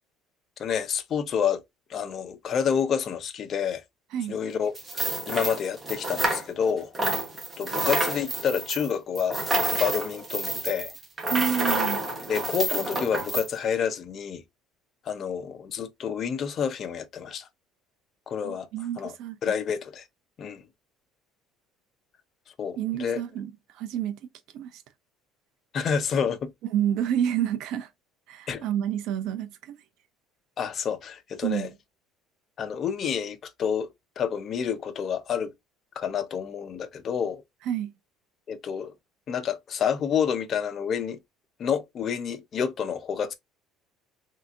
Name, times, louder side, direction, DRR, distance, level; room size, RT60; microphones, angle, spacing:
voice 1, 0.6-1.6 1.9-3.8 4.3-6.9 7.6-9.4 9.7-10.9 12.3-14.4 15.0-17.5 18.3-18.7 19.0-19.1 19.4-20.0 20.4-20.6 22.6-23.2 25.7-26.5 28.5-28.6 30.6-31.7 32.6-35.5 36.0-37.4 38.5-38.9 39.3-41.2 41.6-43.3, left 7 dB, 40° left, 0.6 m, -29 dB
sound 1, 4.8-6.7 6.9-13.5, right 2 dB, 15° right, 1.0 m, -29 dB
voice 2, 11.3-12.0 18.4-19.4 22.8-24.2 24.5-24.8 26.7-27.9 28.3-29.8 31.4-31.7 37.7-37.9, right 10 dB, 65° right, 0.6 m, -29 dB
3.3 x 2.8 x 2.5 m
cardioid pair, 135°, 0 cm